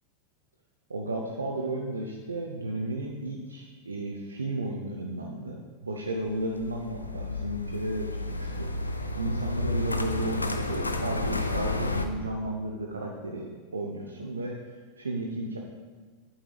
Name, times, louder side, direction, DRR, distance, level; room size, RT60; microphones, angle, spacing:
voice 1, 0.9-14.5 15.0-15.6, right 1 dB, 75° right, 0 dB, 0.7 m, -34 dB
sound 1, 6.2-12.1, left 2 dB, 80° left, 0.5 m, -31 dB
8.6 x 7.4 x 3.3 m, 1.4 s
figure-of-eight pair, 90°, 0 cm